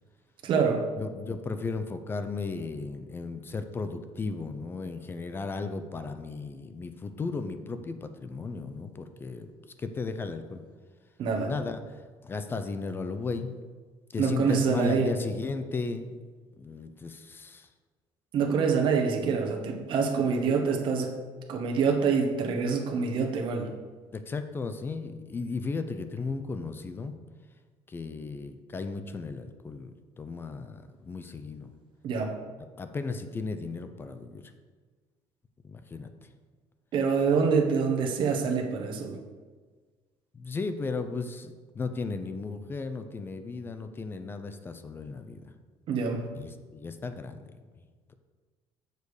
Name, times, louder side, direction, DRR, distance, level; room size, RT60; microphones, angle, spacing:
voice 1, 0.4-0.9 11.2-11.5 14.2-15.1 18.3-21.1 21.5-23.7 32.0-32.3 36.9-39.2 45.9-46.2, right 5 dB, 50° right, 2 dB, 1.1 m, -26 dB
voice 2, 1.0-9.5 9.8-10.6 11.5-12.0 12.2-13.6 14.1-16.2 16.6-17.7 24.1-27.2 27.9-29.9 30.2-31.7 32.8-34.4 35.6-36.1 40.3-45.5 46.3-47.6 48.1-48.2, left 4 dB, 20° left, 9 dB, 0.5 m, -35 dB
6.9 x 6.7 x 4.8 m, 1.4 s
cardioid pair, 150°, 11 cm